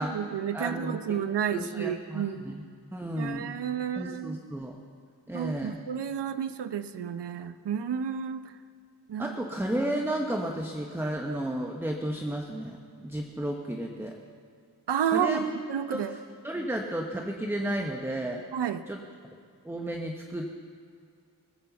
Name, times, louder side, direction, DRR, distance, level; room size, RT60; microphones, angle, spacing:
voice 1, 0.0-2.6 3.2-4.4 5.3-8.5 9.1-9.4 14.9-15.4 15.7-16.1 18.5-18.8, right 8 dB, 90° right, 11 dB, 0.7 m, -31 dB
voice 2, 0.5-1.2 1.5-2.7 2.9-3.5 3.9-4.8 5.3-5.8 9.2-14.2 15.0-15.5 15.9-16.2 16.4-18.4 18.9-19.0 19.6-20.5, right 1 dB, 5° right, 2 dB, 1.0 m, -33 dB
20.0 x 8.5 x 6.9 m, 2.3 s
wide cardioid pair, 95°, 40 cm